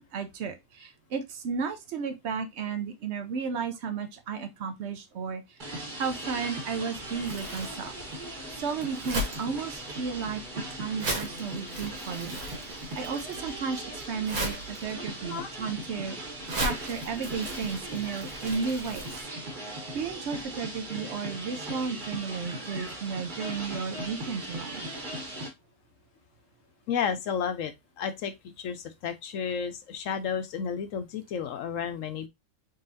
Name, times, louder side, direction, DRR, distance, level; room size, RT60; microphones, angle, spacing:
voice 1, 0.1-7.9 8.6-10.4 10.7-12.4 13.0-16.2 16.6-19.1 19.9-24.8, right 5 dB, 60° right, 0.8 m, -33 dB
sound 1, 5.6-25.5, right 1 dB, 35° right, 1.3 m, -39 dB
Crumpling crinkling, 7.0-19.2, right 1 dB, 85° right, 1.8 m, -38 dB
voice 2, 26.9-32.3, left 7 dB, 70° left, 0.9 m, -32 dB
3.9 x 3.8 x 2.6 m
omnidirectional pair, 1.5 m